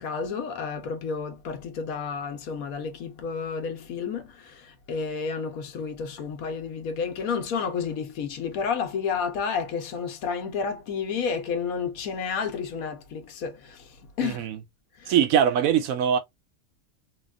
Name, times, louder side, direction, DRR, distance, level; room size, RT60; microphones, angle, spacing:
voice 1, 0.0-14.5 15.0-15.2, left 6 dB, 80° left, 1.1 m, -31 dB
voice 2, 14.2-14.6 15.1-16.2, right 9 dB, 75° right, 1.0 m, -22 dB
3.4 x 2.2 x 2.3 m
omnidirectional pair, 1.5 m